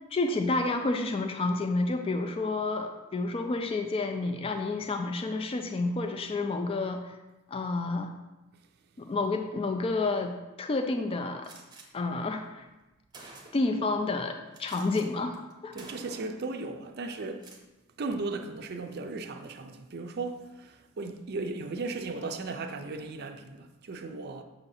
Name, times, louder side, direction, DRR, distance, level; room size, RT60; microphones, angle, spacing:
voice 1, 0.1-7.2 7.5-8.1 9.0-11.5 11.9-12.7 13.5-15.7, left 3 dB, 25° left, 0.3 m, -30 dB
Gunshot gunfire, 11.4-11.9 12.7-12.8 13.1-13.8 14.5-15.0 15.3-15.5 15.8-16.4 17.3-17.6, right 3 dB, 20° right, 0.8 m, -49 dB
voice 2, 15.7-17.5 18.0-24.4, right 3 dB, 50° right, 0.5 m, -36 dB
6.7 x 2.7 x 5.5 m
head